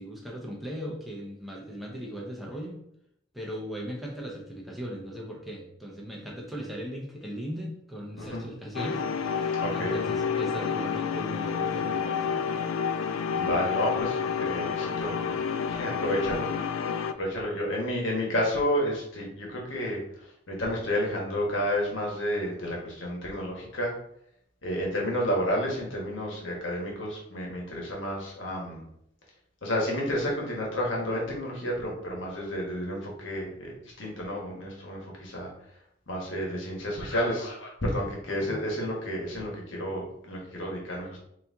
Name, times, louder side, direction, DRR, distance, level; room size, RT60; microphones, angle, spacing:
voice 1, 0.0-2.8 3.3-12.5 38.3-38.6, equal, ahead, -3 dB, 0.9 m, -38 dB
voice 2, 8.1-8.5 9.6-10.0 13.4-15.4 15.7-16.5 17.2-20.0 20.5-23.9 24.6-28.9 29.6-35.5 36.1-41.2, equal, 70° left, -2 dB, 1.4 m, -31 dB
sound 1, 8.8-17.1, left 6 dB, 85° left, 0.3 m, -29 dB
4.1 x 2.9 x 3.6 m, 0.73 s
head